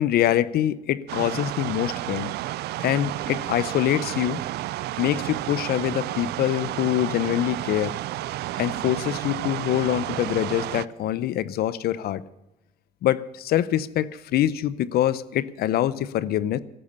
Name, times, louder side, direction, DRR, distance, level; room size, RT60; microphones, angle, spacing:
voice 1, 0.0-2.3 2.8-4.4 5.0-7.9 8.5-12.2 13.0-16.6, left 12 dB, 65° left, 18 dB, 0.7 m, -24 dB
sound 1, 1.1-10.9, right 16 dB, 75° right, 0.5 m, -31 dB
14.5 x 12.0 x 6.8 m, 0.98 s
cardioid pair, 110°, 17 cm